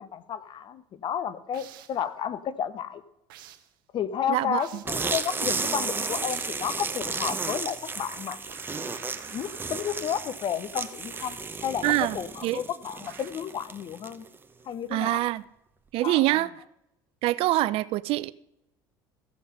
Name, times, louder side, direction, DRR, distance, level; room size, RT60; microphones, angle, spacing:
voice 1, 0.0-3.0 3.9-8.4 9.3-14.3 14.6-15.2 16.0-16.4, left 8 dB, 45° left, 0.8 m, -32 dB
sound 1, 1.5-2.1 3.3-3.7 4.6-5.0 6.2-6.7 8.5-10.2 11.1-11.5 13.0-13.5, right 12 dB, 80° right, 0.8 m, -49 dB
voice 2, 4.3-4.7 11.8-12.6 14.9-15.4 15.9-16.5 17.2-18.3, right 17 dB, 60° right, 0.4 m, -25 dB
sound 2, 4.9-14.4, right 4 dB, 20° right, 0.8 m, -33 dB
15.0 x 5.5 x 5.5 m
hypercardioid pair, 75°, 11 cm